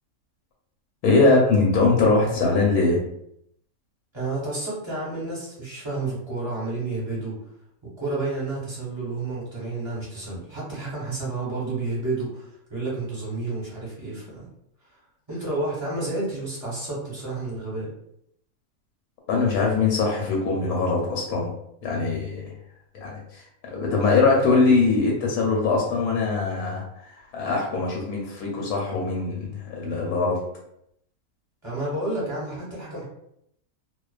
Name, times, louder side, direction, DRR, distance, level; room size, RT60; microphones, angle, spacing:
voice 1, 1.0-3.0 19.3-21.5 21.8-22.5 22.9-30.4, left 3 dB, 90° left, -1 dB, 1.1 m, -22 dB
voice 2, 4.1-7.3 8.0-14.5 15.3-17.9 31.6-33.0, right 2 dB, 25° right, -6 dB, 0.6 m, -30 dB
2.4 x 2.2 x 2.3 m, 0.74 s
omnidirectional pair, 1.6 m